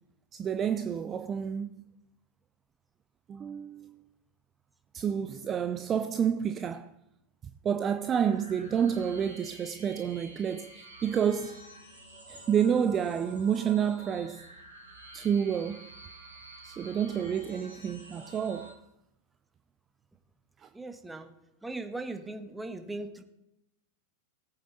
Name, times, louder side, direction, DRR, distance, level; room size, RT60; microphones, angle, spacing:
voice 1, 0.3-1.7 3.3-4.0 4.9-6.9 7.6-11.6 12.3-14.4 15.1-15.9 16.6-18.8 20.6-20.7, right 8 dB, 25° right, 0.5 m, -29 dB
sound 1, 8.0-18.7, right 2 dB, 80° right, 4.1 m, -49 dB
voice 2, 20.7-21.3 21.6-23.2, right 2 dB, 5° right, 1.3 m, -39 dB
18.5 x 8.5 x 4.1 m
figure-of-eight pair, 90°, 0 cm